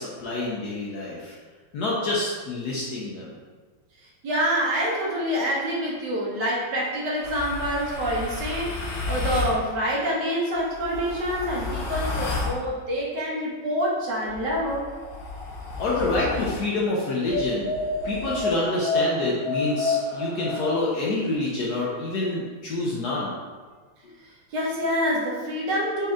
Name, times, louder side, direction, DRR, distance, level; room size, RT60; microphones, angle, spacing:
voice 1, 0.0-1.3 1.7-3.3 15.8-17.7 18.0-23.3, left 2 dB, 65° left, -5 dB, 1.0 m, -27 dB
voice 2, 4.2-14.9 24.5-26.1, equal, 65° right, -4 dB, 1.4 m, -26 dB
sound 1, 7.2-9.6 10.5-12.6 14.2-16.6 17.3-20.7, left 3 dB, 80° left, 1.6 m, -30 dB
4.1 x 3.3 x 3.5 m, 1.4 s
omnidirectional pair, 2.2 m